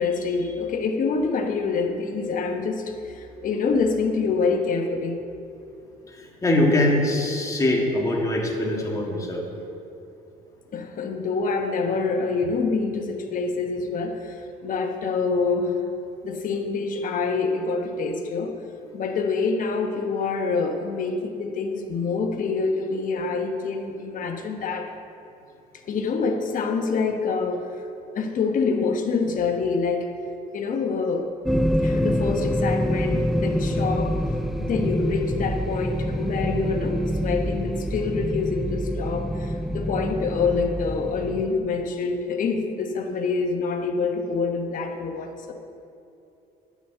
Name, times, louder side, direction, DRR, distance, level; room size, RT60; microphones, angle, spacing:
voice 1, 0.0-5.2 10.7-15.8 16.2-18.5 18.9-24.9 25.9-27.8 28.1-30.1 30.5-31.3 31.8-34.2 34.6-45.5, left 4 dB, 50° left, 4 dB, 1.1 m, -26 dB
voice 2, 6.1-9.5, left 1 dB, 20° left, -1 dB, 1.9 m, -23 dB
sound 1, 31.5-41.5, equal, ahead, 0.4 m, -26 dB
9.4 x 6.2 x 7.2 m, 2.8 s
cardioid pair, 110°, 17 cm